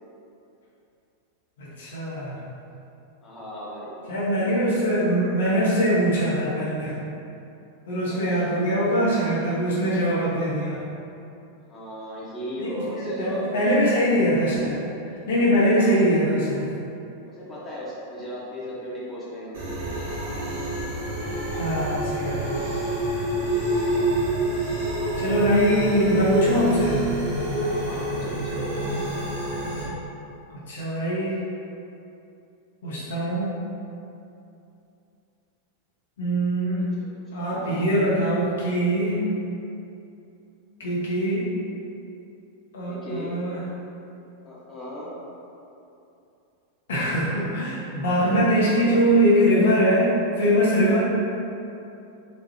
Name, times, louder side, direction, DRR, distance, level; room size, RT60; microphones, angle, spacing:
voice 1, 1.6-2.4 4.1-7.0 7.9-10.8 12.6-14.8 15.3-16.7 21.5-22.7 25.2-27.0 30.5-31.4 32.8-33.5 36.2-36.8 37.3-39.2 40.8-41.5 42.7-43.6 46.9-51.0, equal, 60° left, -7 dB, 0.7 m, -22 dB
voice 2, 3.2-4.1 8.1-8.8 11.7-13.5 15.8-16.2 17.2-19.8 27.7-28.7 36.8-37.4 42.9-43.4 44.4-45.1 48.4-49.0, equal, 15° left, -8 dB, 0.9 m, -37 dB
sound 1, 19.5-29.8, right 1 dB, 50° right, 1.0 m, -27 dB
4.0 x 2.3 x 3.0 m, 2.7 s
figure-of-eight pair, 90°, 0 cm